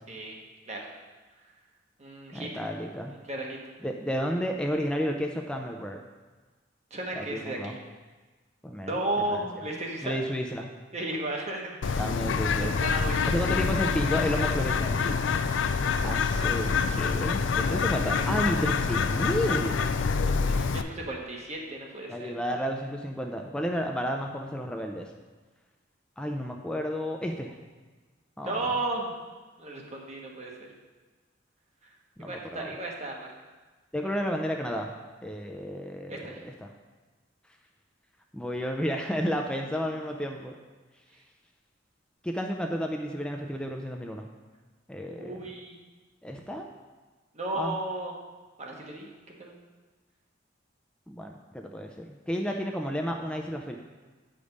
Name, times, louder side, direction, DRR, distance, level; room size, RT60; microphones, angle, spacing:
voice 1, 0.1-0.4 0.7-0.9 2.0-2.5 3.1-3.6 6.9-7.8 8.9-10.2 10.9-12.1 12.6-13.3 18.1-18.2 20.2-22.4 28.4-29.2 29.6-30.5 32.2-33.3 36.1-36.5 45.2-45.8 47.3-48.1 48.6-49.1 49.4-49.5, right 2 dB, 35° right, -1 dB, 1.3 m, -34 dB
voice 2, 2.3-3.1 3.8-6.0 7.1-7.8 8.6-8.9 9.3-9.4 10.0-10.7 12.0-12.8 13.3-15.2 16.0-19.8 22.1-25.1 26.2-27.5 28.4-28.8 32.2-32.7 33.9-35.0 35.2-36.7 38.3-40.5 42.2-44.3 44.9-45.5 46.2-46.7 47.6-47.8 51.1-53.8, equal, 5° left, 2 dB, 0.4 m, -32 dB
Bird, 11.8-20.8, left 5 dB, 75° left, 0.4 m, -26 dB
8.4 x 5.1 x 5.2 m, 1.3 s
head